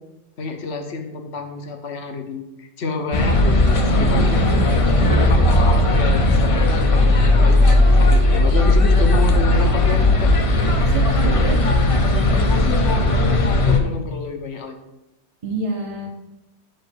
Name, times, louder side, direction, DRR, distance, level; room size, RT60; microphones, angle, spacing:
voice 1, 0.4-4.4 5.0-7.6 8.0-10.3 12.1-14.8, left 4 dB, 60° left, 5 dB, 1.1 m, -29 dB
sound 1, 3.1-13.8, left 2 dB, 35° left, 0.5 m, -16 dB
voice 2, 4.0-6.2 10.9-11.6 15.4-16.1, right 3 dB, 30° right, 0 dB, 0.8 m, -28 dB
5.4 x 5.1 x 6.1 m, 0.95 s
omnidirectional pair, 1.3 m